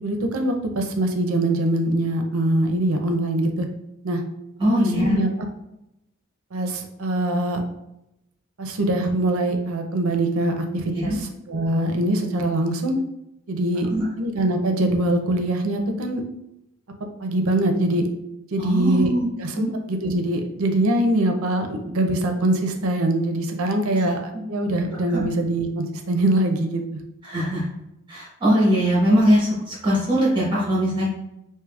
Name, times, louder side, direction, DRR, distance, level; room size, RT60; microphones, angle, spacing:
voice 1, 0.0-3.7 4.0-4.2 4.7-5.5 6.5-7.6 8.6-12.9 13.5-13.9 14.2-16.2 17.2-18.1 18.5-19.1 19.4-27.0, right 1 dB, 70° right, 4 dB, 0.6 m, -23 dB
voice 2, 4.6-5.2 10.9-11.2 13.9-14.0 18.6-19.3 24.3-24.4 25.1-25.2 27.2-27.7 28.1-31.1, equal, 20° right, -7 dB, 1.3 m, -21 dB
4.9 x 2.7 x 2.4 m, 0.87 s
head